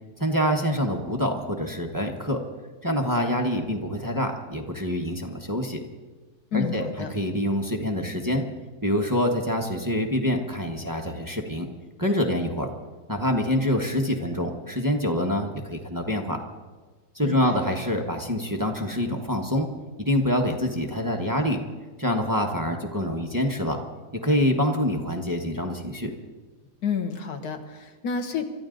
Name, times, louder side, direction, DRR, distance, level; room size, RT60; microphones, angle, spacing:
voice 1, 0.2-2.4 2.8-5.8 6.5-8.5 8.8-11.7 12.0-12.7 13.1-16.4 17.1-19.7 20.0-21.6 22.0-23.8 24.2-26.1, equal, 15° right, 2 dB, 1.1 m, -26 dB
voice 2, 6.5-7.1 17.2-17.6 26.8-28.4, left 6 dB, 80° left, 6 dB, 1.7 m, -30 dB
24.5 x 13.5 x 3.9 m, 1.4 s
omnidirectional pair, 1.6 m